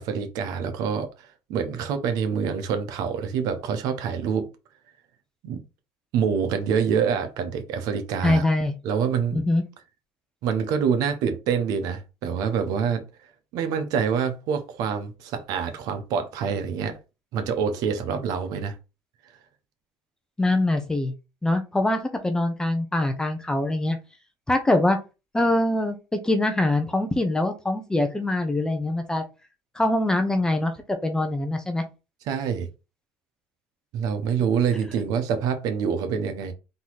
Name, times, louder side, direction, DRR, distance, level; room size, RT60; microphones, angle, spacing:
voice 1, 0.0-4.5 5.4-5.6 6.1-8.5 8.8-9.4 10.4-13.1 13.5-17.0 17.3-18.8 32.2-32.7 33.9-36.5, right 7 dB, 70° right, 1.0 m, -26 dB
voice 2, 8.2-8.7 9.3-9.6 20.4-21.1 21.4-24.0 24.5-25.0 25.3-29.2 29.8-30.7 31.0-31.8, left 2 dB, 10° left, 0.8 m, -23 dB
4.0 x 3.0 x 4.1 m
supercardioid pair, 110°, 7 cm